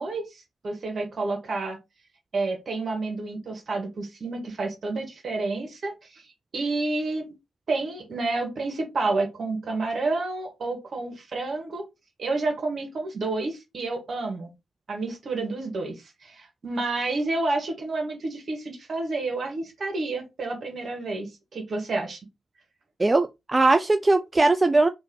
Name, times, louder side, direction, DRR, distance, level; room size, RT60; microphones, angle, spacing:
voice 1, 0.0-1.8 2.3-7.3 7.7-11.8 12.2-14.5 14.9-22.2, right 3 dB, 55° right, 1.6 m, -30 dB
voice 2, 23.0-24.9, right 2 dB, 25° right, 0.3 m, -20 dB
3.1 x 2.7 x 3.8 m
hypercardioid pair, 40°, 0 cm